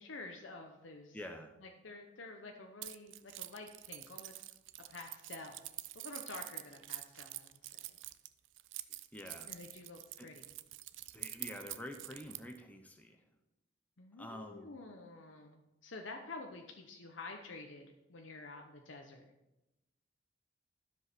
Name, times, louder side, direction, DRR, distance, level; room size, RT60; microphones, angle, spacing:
voice 1, 0.0-1.2 1.6-4.5 4.9-5.7 5.9-8.0 9.5-10.6 14.0-19.3, left 3 dB, 75° left, 3 dB, 0.9 m, -49 dB
voice 2, 1.1-1.5 9.1-9.5 10.2-10.3 11.1-13.2 14.2-14.7, left 1 dB, 10° left, 4 dB, 0.7 m, -47 dB
Keys jangling, 2.8-12.6, right 16 dB, 70° right, 0.4 m, -46 dB
12.5 x 5.2 x 5.9 m, 0.96 s
head